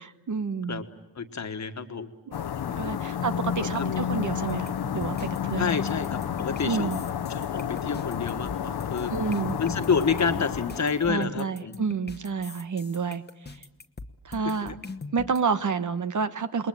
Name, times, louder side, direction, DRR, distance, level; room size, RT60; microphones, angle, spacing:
voice 1, 0.3-0.8 2.3-2.5 2.8-5.7 6.6-7.0 9.1-9.6 11.1-13.2 14.2-14.7 15.1-16.7, right 5 dB, 55° right, 11 dB, 1.2 m, -29 dB
voice 2, 1.1-2.1 2.4-2.8 3.7-4.0 5.6-6.9 7.3-9.1 9.6-11.7 14.6-14.7, left 5 dB, 45° left, 7 dB, 1.6 m, -29 dB
sound 1, 2.3-11.1, left 8 dB, 90° left, 1.0 m, -31 dB
sound 2, 4.5-15.4, left 3 dB, 25° left, 1.1 m, -41 dB
28.0 x 21.5 x 9.1 m, 0.98 s
wide cardioid pair, 125°, 37 cm